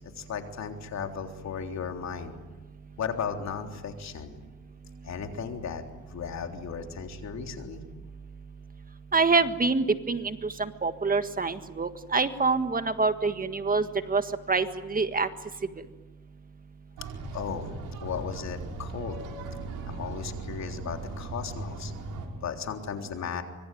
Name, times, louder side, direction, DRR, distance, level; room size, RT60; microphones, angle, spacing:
voice 1, 0.2-2.3 3.0-4.4 5.0-5.8 6.1-7.8 17.3-19.2 19.9-21.9 22.4-23.4, left 6 dB, 60° left, 4 dB, 3.7 m, -35 dB
voice 2, 9.1-15.3, right 4 dB, 30° right, 9 dB, 1.6 m, -26 dB
sound 1, 17.0-22.3, right 3 dB, 85° right, 5.1 m, -38 dB
25.0 x 23.0 x 9.3 m, 1.2 s
cardioid pair, 90°, 30 cm